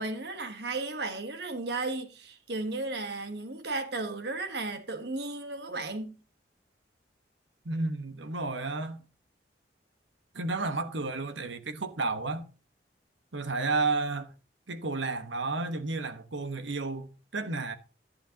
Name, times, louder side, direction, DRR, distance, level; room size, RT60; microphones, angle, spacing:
voice 1, 0.0-6.1, right 2 dB, 60° right, 1.4 m, -34 dB
voice 2, 7.6-9.0 10.3-12.5 13.3-14.3 14.7-17.8, right 3 dB, 80° right, 1.2 m, -32 dB
11.0 x 9.9 x 2.9 m
head